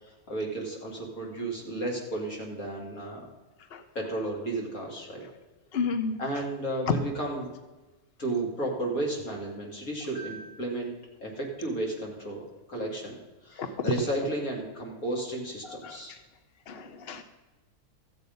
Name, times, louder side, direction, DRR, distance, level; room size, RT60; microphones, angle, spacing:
voice 1, 0.0-3.2 3.9-5.2 6.2-7.5 8.2-10.9 11.2-16.1, right 2 dB, 70° left, -2 dB, 3.4 m, -33 dB
voice 2, 5.7-6.4 6.9-7.0 13.6-13.7 15.6-16.2 16.7-17.2, left 5 dB, 50° left, 9 dB, 0.9 m, -32 dB
14.5 x 8.0 x 5.4 m, 1.2 s
omnidirectional pair, 1.6 m